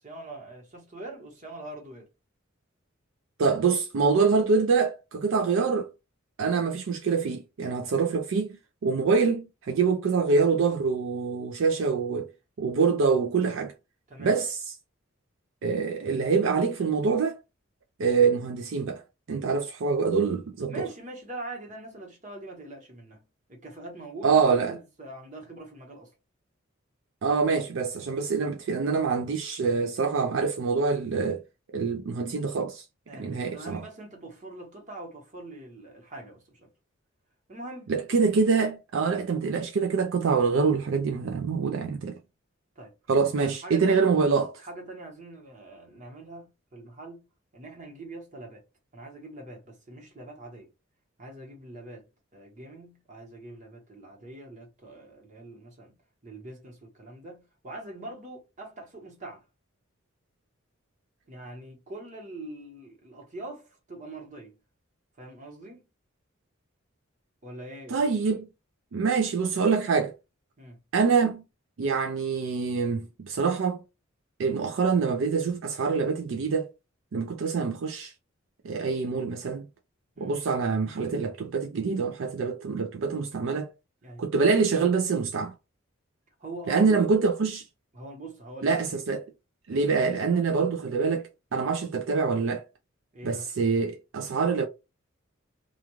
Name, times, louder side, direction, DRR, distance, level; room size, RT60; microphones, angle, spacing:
voice 1, 0.0-2.1 14.1-14.3 20.7-23.2 23.5-26.1 33.1-36.7 37.5-37.9 42.8-42.9 43.4-44.1 44.6-47.3 47.5-48.6 48.9-50.7 51.2-52.1 52.3-56.0 56.2-59.4 61.3-64.5 65.2-65.8 67.4-68.1 70.6-70.8 80.2-80.4 84.0-84.2 86.4-87.0 87.9-89.0 89.7-90.5 91.5-91.7 93.1-93.5, right 2 dB, 35° right, 1.1 m, -43 dB
voice 2, 3.4-5.9 6.4-12.3 12.6-13.7 14.2-14.6 15.6-17.4 18.0-19.0 19.3-20.9 24.2-24.7 27.2-31.4 31.7-32.8 33.1-33.8 37.9-42.2 43.1-44.5 67.9-68.5 68.9-70.1 70.9-71.4 71.8-73.8 74.4-76.7 77.1-78.1 78.6-79.6 80.2-83.7 84.2-85.5 86.7-87.7 88.6-89.3 89.7-92.6 93.2-94.7, right 5 dB, 70° right, 0.4 m, -25 dB
2.4 x 2.3 x 2.9 m
head